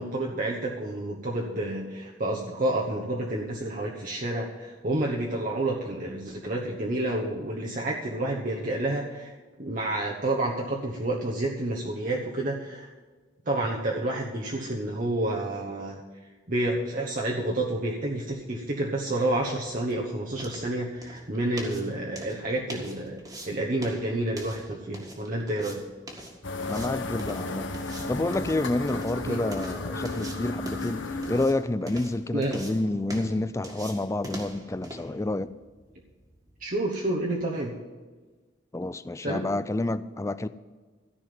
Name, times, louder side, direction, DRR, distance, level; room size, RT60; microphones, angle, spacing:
voice 1, 0.0-9.3 9.6-12.9 13.5-16.0 16.5-25.8 29.3-29.4 32.3-32.6 36.6-37.8 39.2-39.4, right 1 dB, 45° right, -2 dB, 1.1 m, -29 dB
sound 1, 19.2-37.1, right 1 dB, 20° right, 1.8 m, -44 dB
sound 2, 26.4-31.5, left 2 dB, 80° left, 1.1 m, -33 dB
voice 2, 26.7-27.8 28.1-35.5 38.7-40.5, left 2 dB, 15° left, 14 dB, 0.3 m, -29 dB
13.5 x 5.7 x 9.4 m, 1.3 s
head